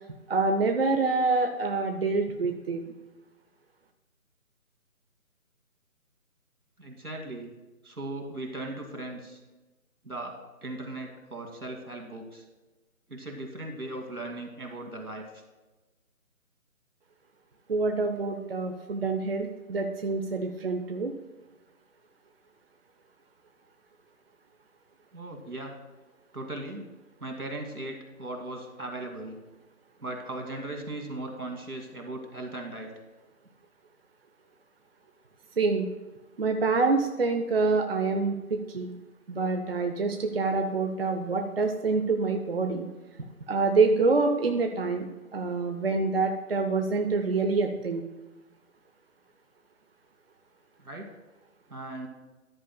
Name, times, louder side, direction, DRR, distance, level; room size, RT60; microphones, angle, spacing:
voice 1, 0.3-2.8 17.7-21.1 35.6-35.9 36.4-39.0 39.3-42.9 43.5-45.1 45.3-48.0, right 3 dB, 45° right, 5 dB, 0.7 m, -26 dB
voice 2, 6.8-7.5 7.8-9.4 10.0-12.5 13.1-15.2 25.1-25.7 26.3-26.8 27.2-29.4 30.0-32.9 50.8-51.1 51.7-52.1, right 2 dB, 85° right, 2 dB, 2.5 m, -38 dB
13.5 x 10.5 x 2.2 m, 1.1 s
figure-of-eight pair, 155°, 43 cm